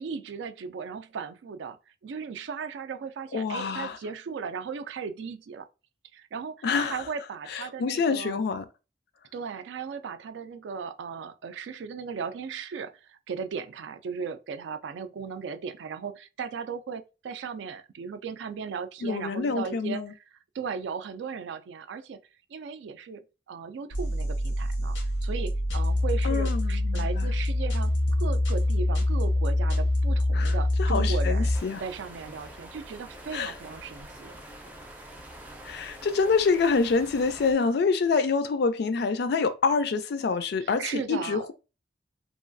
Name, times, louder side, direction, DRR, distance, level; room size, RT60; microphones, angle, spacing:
voice 1, 0.0-5.7 6.1-8.4 9.3-20.0 20.5-22.2 22.5-31.5 31.8-34.3 40.6-41.4, right 6 dB, 70° right, 0.3 m, -37 dB
voice 2, 3.3-4.0 6.6-7.0 7.5-8.7 19.0-20.1 26.2-27.3 30.3-31.8 33.3-33.5 35.6-41.5, left 4 dB, 60° left, 0.4 m, -26 dB
sound 1, 23.9-31.6, left 1 dB, 90° left, 0.7 m, -25 dB
sound 2, 31.5-37.5, right 1 dB, 10° right, 0.4 m, -45 dB
3.0 x 2.3 x 2.5 m
head